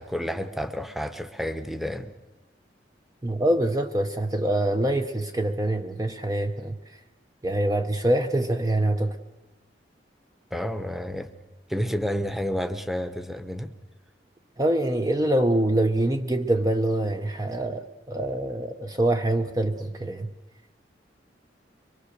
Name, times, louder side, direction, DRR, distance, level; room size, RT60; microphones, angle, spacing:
voice 1, 0.0-2.1 10.5-11.3 11.7-13.7, equal, ahead, 1.0 m, -30 dB
voice 2, 3.2-7.0 7.4-9.2 14.6-20.3, right 1 dB, 20° right, 0.7 m, -25 dB
24.0 x 22.0 x 6.6 m
head